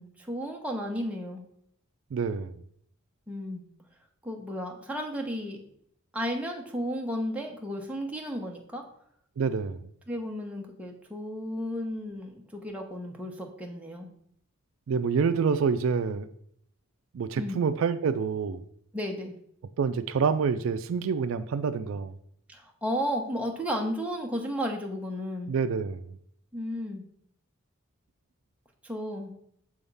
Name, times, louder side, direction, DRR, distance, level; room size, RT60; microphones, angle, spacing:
voice 1, 0.0-1.5 3.3-3.7 4.2-5.6 6.1-8.8 10.1-14.1 17.4-17.6 18.9-19.4 22.5-25.5 26.5-27.0 28.8-29.3, equal, 5° right, 0 dB, 0.9 m, -33 dB
voice 2, 2.1-2.6 9.4-9.9 14.9-16.3 17.1-18.6 19.8-22.2 25.5-26.2, right 5 dB, 65° right, 10 dB, 0.4 m, -27 dB
6.9 x 3.6 x 5.4 m, 0.68 s
head